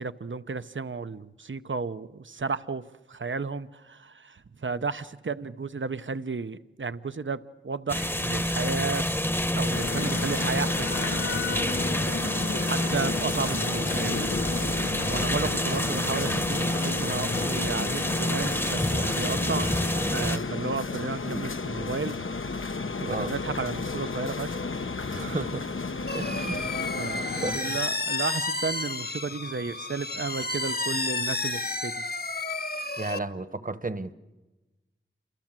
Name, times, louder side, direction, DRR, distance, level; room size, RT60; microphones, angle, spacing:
voice 1, 0.0-2.8 3.1-9.1 9.5-11.2 12.6-19.7 20.1-24.7 25.1-25.4 26.1-26.2 26.9-32.0, right 4 dB, 70° right, 13 dB, 0.8 m, -33 dB
sound 1, 7.9-20.4, left 1 dB, 10° left, 0.9 m, -28 dB
sound 2, 9.7-27.6, left 4 dB, 85° left, 1.0 m, -32 dB
voice 2, 25.2-25.7 26.1-26.6 27.4-27.8 33.0-34.1, right 2 dB, 45° right, 13 dB, 1.2 m, -33 dB
sound 3, 26.1-33.2, left 3 dB, 50° left, 1.2 m, -31 dB
28.5 x 25.5 x 7.6 m, 1.1 s
wide cardioid pair, 50°, 20 cm